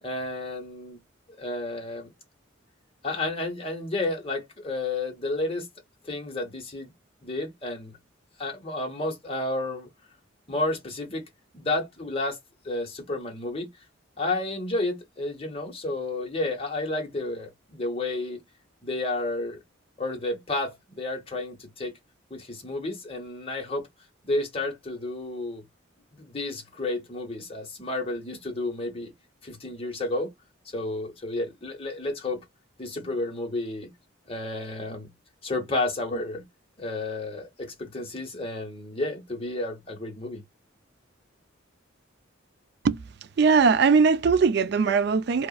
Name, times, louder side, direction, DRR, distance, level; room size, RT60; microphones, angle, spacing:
voice 1, 0.0-1.0 1.4-2.1 3.0-5.7 6.0-6.9 7.2-8.0 8.4-9.9 10.5-11.2 11.5-12.4 12.6-13.7 14.2-18.4 18.8-19.6 20.0-21.9 22.3-23.9 24.2-25.6 26.2-29.1 29.4-30.3 30.7-32.4 32.8-33.9 34.3-35.1 35.4-36.4 36.8-40.4, left 2 dB, 30° left, 1.0 m, -31 dB
voice 2, 43.4-45.5, right 5 dB, 55° right, 0.3 m, -20 dB
2.8 x 2.3 x 2.3 m
head